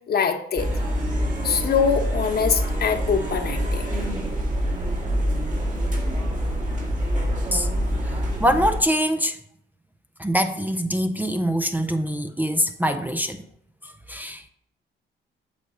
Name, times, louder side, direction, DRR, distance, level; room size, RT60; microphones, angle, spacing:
voice 1, 0.1-0.7 1.4-3.9, left 6 dB, 50° left, 1.0 m, -23 dB
sound 1, 0.6-8.8, equal, 40° right, 2.1 m, -25 dB
voice 2, 8.4-9.4 10.2-13.4 13.8-14.5, equal, 10° right, 0.5 m, -24 dB
8.3 x 3.6 x 6.4 m
cardioid pair, 90°, 20 cm